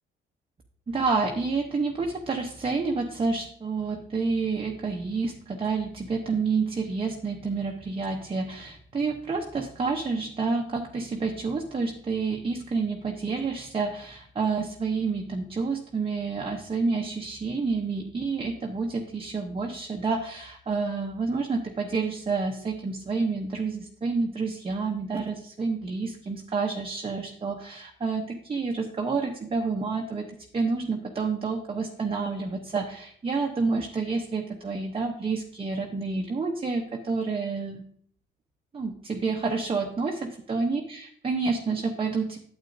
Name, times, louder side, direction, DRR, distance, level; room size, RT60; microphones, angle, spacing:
voice 1, 0.9-37.8 38.7-42.4, right 4 dB, 25° right, 1 dB, 0.8 m, -29 dB
9.0 x 8.2 x 2.6 m, 0.62 s
cardioid pair, 90°, 20 cm